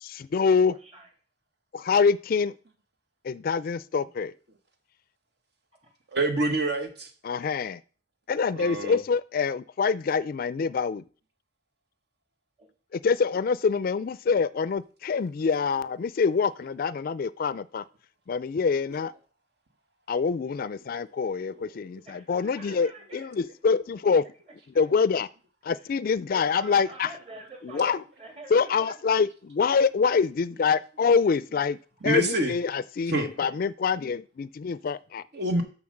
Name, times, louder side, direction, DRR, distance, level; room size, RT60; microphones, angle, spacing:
voice 1, 0.0-0.7 1.7-2.5 3.2-4.3 7.2-7.8 8.3-11.0 12.9-17.8 18.3-19.1 20.1-24.2 24.8-25.3 25.6-27.1 27.6-28.0 28.5-31.8 32.0-35.2, left 5 dB, 55° left, 0.4 m, -25 dB
voice 2, 0.7-1.1 5.8-5.9 12.6-12.7 22.0-23.5 24.1-24.2 24.7-24.8 25.7-25.9 26.3-28.9 33.3-33.6, right 1 dB, 35° right, 2.8 m, -46 dB
voice 3, 6.1-7.1 8.6-9.0 20.6-20.7 21.5-21.9 32.0-32.5 33.1-33.3 35.3-35.6, right 1 dB, 65° right, 1.2 m, -27 dB
7.1 x 6.3 x 6.5 m
head